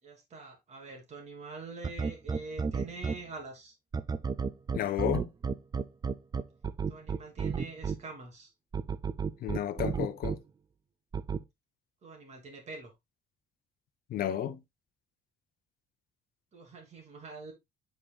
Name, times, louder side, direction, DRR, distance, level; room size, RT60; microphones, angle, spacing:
voice 1, 0.0-3.7 6.9-8.5 12.0-12.9 16.5-17.5, right 3 dB, 40° right, 3.1 m, -45 dB
sound 1, 1.8-3.2 3.9-8.0 8.7-10.4 11.1-11.4, right 5 dB, 25° right, 0.5 m, -31 dB
voice 2, 4.8-5.3 9.4-10.4 14.1-14.6, left 10 dB, 60° left, 0.8 m, -32 dB
8.6 x 5.2 x 2.3 m
cardioid pair, 110°, 17 cm